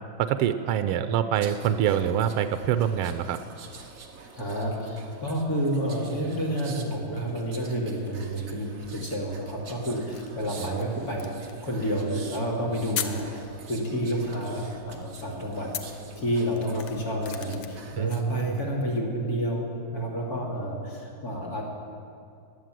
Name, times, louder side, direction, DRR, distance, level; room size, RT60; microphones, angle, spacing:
voice 1, 0.2-3.4 10.6-11.0 18.0-18.7, right 10 dB, 90° right, 10 dB, 1.5 m, -26 dB
sound 1, 1.3-18.3 18.7-19.0, right 4 dB, 45° right, 1.3 m, -47 dB
voice 2, 4.3-11.3 11.6-15.7 16.1-19.7 19.9-21.6, equal, 45° left, -2 dB, 3.0 m, -30 dB
sound 2, 9.8-18.9, left 9 dB, 80° left, 1.7 m, -42 dB
20.5 x 8.1 x 7.6 m, 2.4 s
omnidirectional pair, 2.3 m